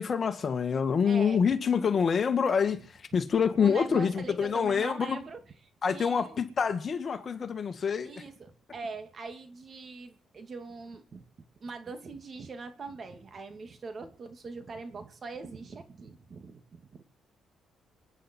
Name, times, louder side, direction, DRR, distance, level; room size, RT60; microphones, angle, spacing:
voice 1, 0.0-5.2 5.8-8.1, left 6 dB, 45° left, 2.0 m, -26 dB
voice 2, 1.0-1.6 3.6-5.4 5.9-6.4 8.0-11.2 11.6-17.0, right 4 dB, 45° right, 2.4 m, -42 dB
27.0 x 10.0 x 4.6 m
cardioid pair, 90°, 0 cm